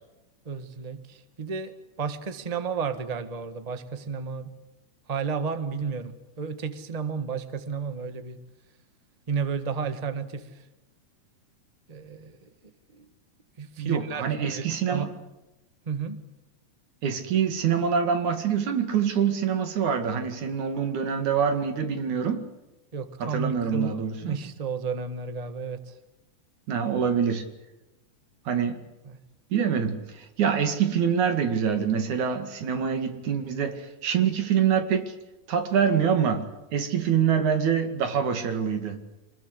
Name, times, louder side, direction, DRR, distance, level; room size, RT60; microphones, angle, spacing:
voice 1, 0.4-1.7 2.0-4.5 5.1-8.4 9.3-10.5 11.9-12.4 12.9-13.0 13.6-15.1 15.9-16.2 22.9-23.9 24.2-25.9 29.1-29.2, right 5 dB, 40° right, 10 dB, 0.5 m, -32 dB
voice 2, 13.8-15.1 17.0-22.4 23.2-24.4 26.7-27.4 28.5-28.8 29.5-35.1 35.5-36.4 36.7-39.0, right 7 dB, 65° right, 8 dB, 3.5 m, -25 dB
25.5 x 21.0 x 8.1 m, 0.98 s
omnidirectional pair, 3.8 m